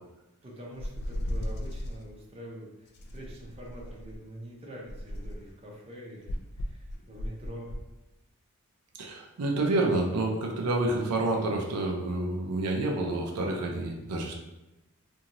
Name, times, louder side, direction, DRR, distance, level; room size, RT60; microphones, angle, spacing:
voice 1, 0.4-7.7, right 1 dB, 25° right, -3 dB, 0.6 m, -45 dB
sound 1, 0.8-2.0 2.9-4.2 4.8-5.5 6.3-7.9, left 1 dB, 50° left, 0.3 m, -36 dB
voice 2, 9.0-14.3, right 2 dB, 80° right, 0 dB, 0.5 m, -28 dB
2.7 x 2.6 x 2.9 m, 0.98 s
head